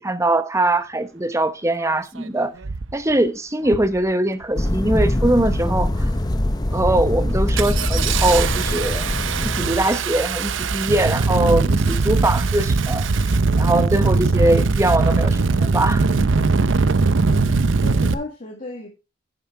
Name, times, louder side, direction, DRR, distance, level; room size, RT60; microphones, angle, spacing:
voice 1, 0.0-2.5 2.9-6.1 6.7-9.1 9.4-16.0, right 1 dB, 15° right, 0.9 m, -22 dB
Engine starting, 1.8-1.9 2.6-2.9 3.6-4.0 4.3-4.9 5.3-5.8 6.2-6.4 6.8-18.1, right 4 dB, 75° right, 0.6 m, -21 dB
sound 1, 4.6-9.7, left 1 dB, 20° left, 0.7 m, -22 dB
voice 2, 17.2-18.9, left 2 dB, 45° left, 1.8 m, -35 dB
9.9 x 7.2 x 4.5 m
head